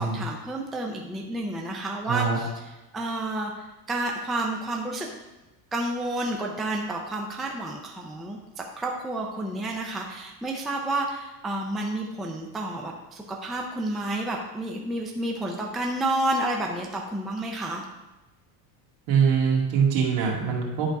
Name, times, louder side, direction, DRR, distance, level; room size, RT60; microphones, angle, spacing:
voice 1, 0.0-5.1 5.7-8.4 8.8-17.8, right 1 dB, ahead, 0 dB, 0.4 m, -30 dB
voice 2, 2.1-2.4 19.1-20.9, right 6 dB, 70° right, -2 dB, 2.2 m, -23 dB
10.5 x 3.9 x 4.7 m, 1.1 s
cardioid pair, 155°, 45 cm